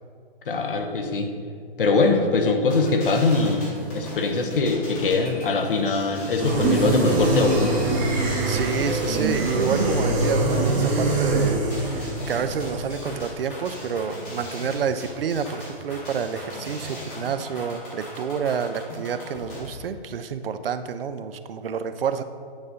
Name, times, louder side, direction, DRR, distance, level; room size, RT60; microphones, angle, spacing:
voice 1, 0.5-1.3 1.8-7.7, left 3 dB, 60° left, 4 dB, 1.0 m, -22 dB
sound 1, 2.7-19.7, left 1 dB, 15° left, 0.9 m, -39 dB
sound 2, 6.4-13.3, right 2 dB, 10° right, 0.7 m, -23 dB
voice 2, 8.2-22.2, right 6 dB, 65° right, 10 dB, 0.6 m, -29 dB
9.1 x 4.1 x 5.1 m, 2.2 s
hypercardioid pair, 170°, 30 cm